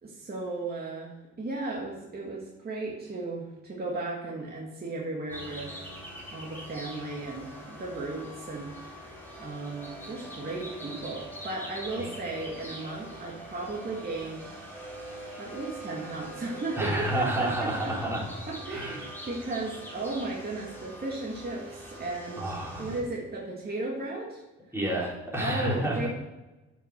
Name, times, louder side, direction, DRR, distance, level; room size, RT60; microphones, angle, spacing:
voice 1, 0.0-5.8 6.3-9.0 9.4-14.6 15.4-16.9 17.2-17.7 18.5-24.4 25.4-26.1, right 2 dB, 30° right, -3 dB, 1.9 m, -35 dB
sound 1, 5.3-23.0, right 1 dB, 5° left, 3.9 m, -43 dB
voice 2, 16.8-18.2 18.7-19.1 22.4-22.9 24.7-26.1, right 1 dB, 10° right, -5 dB, 3.9 m, -30 dB
9.0 x 6.0 x 6.4 m, 1.1 s
cardioid pair, 90°, 30 cm